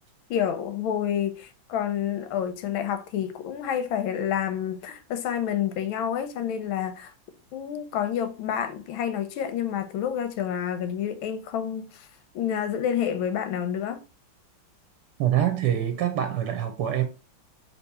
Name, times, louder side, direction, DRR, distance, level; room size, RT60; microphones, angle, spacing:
voice 1, 0.3-7.1 7.5-12.1 12.3-14.0, left 9 dB, 90° left, 1.5 m, -29 dB
voice 2, 15.2-17.0, right 10 dB, 70° right, 1.1 m, -25 dB
3.6 x 2.9 x 4.1 m
omnidirectional pair, 2.2 m